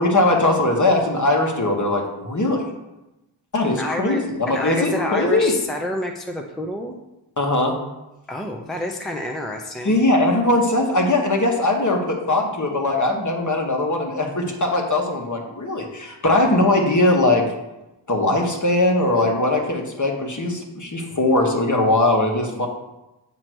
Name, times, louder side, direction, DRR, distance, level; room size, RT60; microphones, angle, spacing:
voice 1, 0.0-2.6 3.5-5.5 7.4-7.8 9.8-17.5 18.1-22.7, left 2 dB, 40° left, 2 dB, 1.3 m, -20 dB
voice 2, 3.7-7.0 8.3-10.0, left 1 dB, ahead, 2 dB, 0.6 m, -28 dB
7.7 x 3.0 x 6.1 m, 0.98 s
cardioid pair, 55°, 46 cm